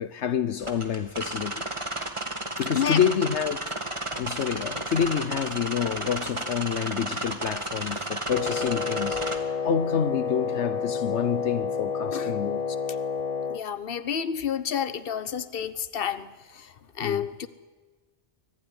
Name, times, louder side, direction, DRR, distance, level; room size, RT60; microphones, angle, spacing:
voice 1, 0.0-1.7 2.6-3.8 4.2-12.6 17.0-17.3, left 8 dB, 75° left, 1.2 m, -28 dB
sound 1, 0.6-9.4, right 1 dB, 25° right, 2.1 m, -33 dB
Wind instrument woodwind instrument, 8.3-13.6, left 5 dB, 35° left, 0.8 m, -30 dB
voice 2, 13.5-17.5, left 8 dB, 55° left, 1.2 m, -30 dB
25.0 x 16.0 x 9.8 m
omnidirectional pair, 1.2 m